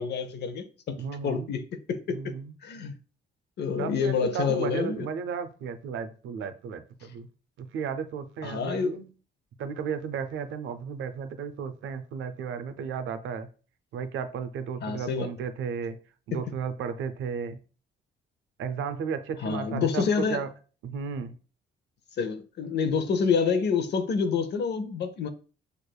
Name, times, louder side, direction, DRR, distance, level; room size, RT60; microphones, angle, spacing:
voice 1, 0.0-1.0 1.2-1.6 1.9-2.2 2.6-2.9 3.6-5.1 8.4-9.0 14.8-15.3 19.4-20.4 22.2-25.3, left 5 dB, 60° left, 0.6 m, -27 dB
voice 2, 1.0-1.5 2.1-2.5 3.8-7.3 7.6-9.1 9.6-13.5 13.9-16.0 16.3-17.6 18.6-20.5 20.8-21.3, right 6 dB, 75° right, 0.5 m, -34 dB
6.5 x 2.4 x 2.2 m
cardioid pair, 90°, 20 cm